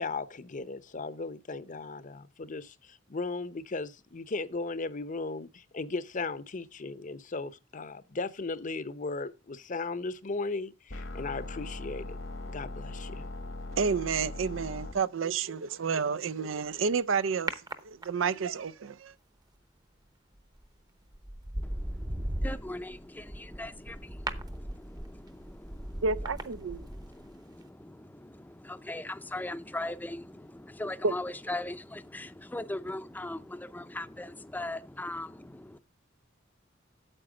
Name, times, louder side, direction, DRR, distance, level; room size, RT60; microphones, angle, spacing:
voice 1, 0.0-12.2 12.5-13.3, left 3 dB, 40° left, 0.7 m, -36 dB
sound 1, 10.9-14.9, left 2 dB, 85° left, 1.8 m, -39 dB
voice 2, 13.8-17.6 17.8-19.1 26.0-26.8 31.0-31.1, right 5 dB, 85° right, 0.5 m, -30 dB
sound 2, 17.5-18.5 20.4-20.6 21.1-27.3 27.6-27.7, right 1 dB, 20° right, 0.9 m, -37 dB
voice 3, 21.6-35.8, left 1 dB, 10° left, 0.6 m, -40 dB
9.0 x 7.6 x 4.9 m
head